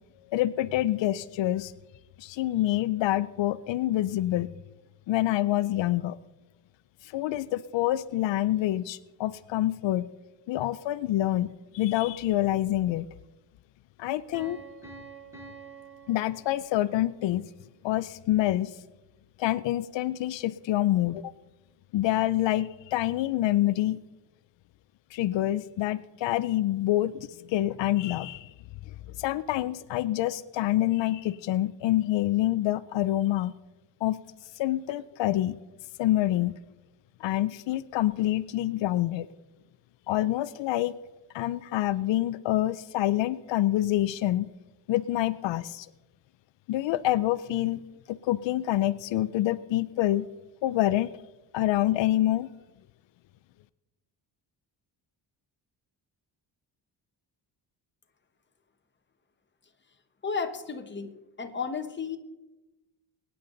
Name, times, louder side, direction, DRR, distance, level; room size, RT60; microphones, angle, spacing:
voice 1, 0.3-1.7 2.2-4.5 5.1-6.2 7.0-10.0 10.5-13.1 14.0-14.6 16.1-17.5 17.8-18.7 19.4-21.3 21.9-24.0 25.1-28.5 29.2-33.5 34.0-34.2 34.6-35.6 36.0-36.5 37.2-39.3 40.1-40.9 41.3-44.5 44.9-45.9 46.7-47.8 48.1-50.3 50.6-51.1 51.5-52.5, left 14 dB, 90° left, 15 dB, 0.6 m, -26 dB
Piano, 14.3-17.1, right 4 dB, 5° right, 5.4 m, -47 dB
voice 2, 60.2-61.1 61.4-62.2, left 5 dB, 25° left, 6 dB, 1.3 m, -33 dB
23.0 x 10.0 x 3.9 m, 1.1 s
cardioid pair, 135°, 43 cm